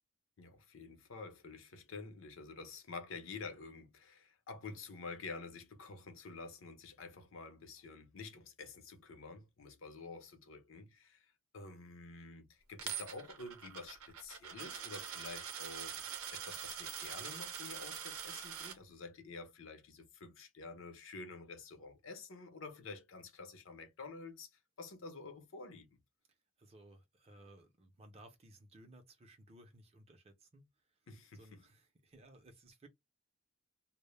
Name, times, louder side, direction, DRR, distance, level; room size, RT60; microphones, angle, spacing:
voice 1, 0.4-24.5 24.8-26.0 31.1-31.6, left 3 dB, 70° left, 0.6 m, -49 dB
Coin (dropping), 12.8-18.8, right 8 dB, 90° right, 0.6 m, -44 dB
voice 2, 26.6-31.0 31.3-32.9, right 1 dB, 30° right, 0.4 m, -59 dB
2.0 x 2.0 x 3.0 m
head